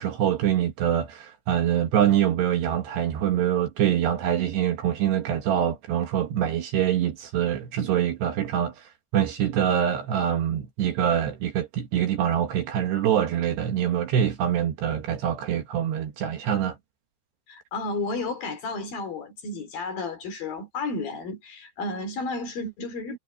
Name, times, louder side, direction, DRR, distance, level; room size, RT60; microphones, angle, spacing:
voice 1, 0.0-16.8, right 10 dB, 65° right, 3.2 m, -25 dB
voice 2, 17.5-23.2, left 3 dB, 50° left, 4.5 m, -32 dB
omnidirectional pair, 5.8 m